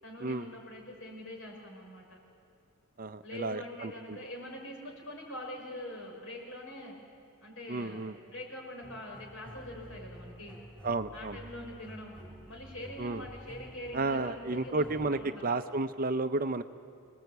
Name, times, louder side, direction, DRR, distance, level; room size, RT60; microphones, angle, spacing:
voice 1, 0.0-2.2 3.2-7.0 7.4-10.6 11.1-12.2 12.5-15.4, left 1 dB, 65° left, 0 dB, 5.6 m, -44 dB
voice 2, 3.0-4.2 7.7-8.1 10.8-11.4 13.0-13.2 13.9-16.6, right 3 dB, 40° right, 11 dB, 0.6 m, -32 dB
sound 1, 8.8-15.1, equal, 5° left, 3.2 m, -50 dB
26.0 x 19.0 x 8.2 m, 2.3 s
head